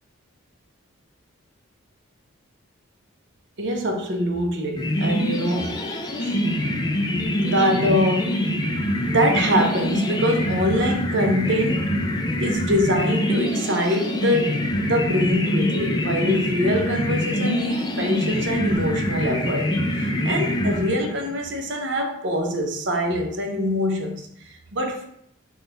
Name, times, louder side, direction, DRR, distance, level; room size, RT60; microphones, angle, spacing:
voice 1, 3.6-5.8 6.2-6.4 7.4-8.6 9.0-11.9 12.4-25.1, equal, 55° right, 0.6 m, -24 dB
sound 1, 4.8-21.3, left 1 dB, 20° left, 0.3 m, -25 dB
3.7 x 2.3 x 3.8 m
head